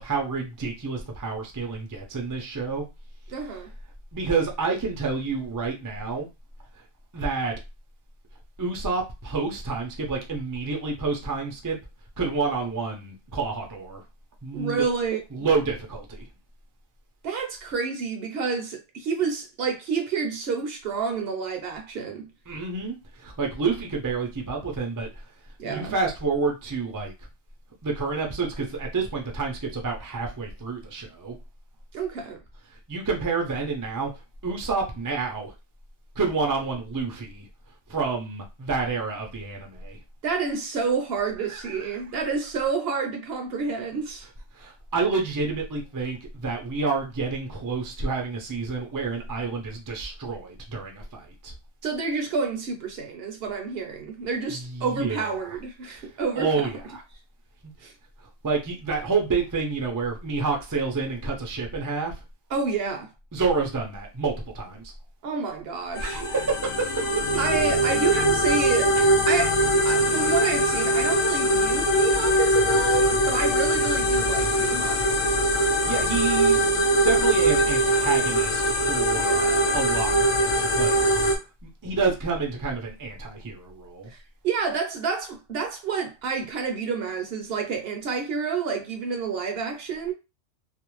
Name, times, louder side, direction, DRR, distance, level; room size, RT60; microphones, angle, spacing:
voice 1, 0.0-2.8 3.4-3.6 4.1-6.3 6.7-6.8 7.1-7.5 8.6-11.8 12.2-14.0 14.4-14.9 15.3-16.3 22.5-25.1 25.6-27.1 27.8-31.4 32.7-34.1 34.4-35.5 36.2-37.5 37.9-40.0 41.5-41.9 44.5-51.5 54.5-55.6 56.0-57.0 57.6-57.7 58.4-62.2 63.3-64.9 66.0-67.2 75.6-79.4 79.7-81.0 81.3-84.1, right 4 dB, 35° right, 0.3 m, -29 dB
voice 2, 3.3-3.7 14.5-15.5 17.2-22.3 25.6-25.9 31.9-32.4 40.2-44.3 51.8-56.7 57.8-57.9 62.5-63.1 65.2-66.2 67.4-75.1 79.1-79.8 84.1-84.2 84.4-90.1, right 5 dB, 60° right, 0.7 m, -29 dB
sound 1, 66.0-81.4, right 1 dB, 55° left, 0.3 m, -22 dB
2.6 x 2.1 x 3.0 m
omnidirectional pair, 1.2 m